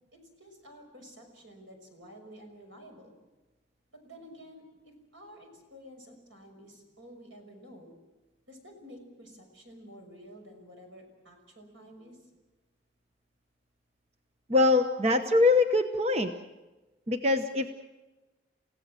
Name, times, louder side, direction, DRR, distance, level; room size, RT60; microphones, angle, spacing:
voice 1, 0.1-3.1 3.9-4.6 5.1-8.0 8.5-12.2, equal, 85° right, 3 dB, 6.2 m, -51 dB
voice 2, 14.5-16.3 17.1-17.7, left 3 dB, 35° right, 8 dB, 1.0 m, -23 dB
29.0 x 16.5 x 7.5 m, 1.1 s
head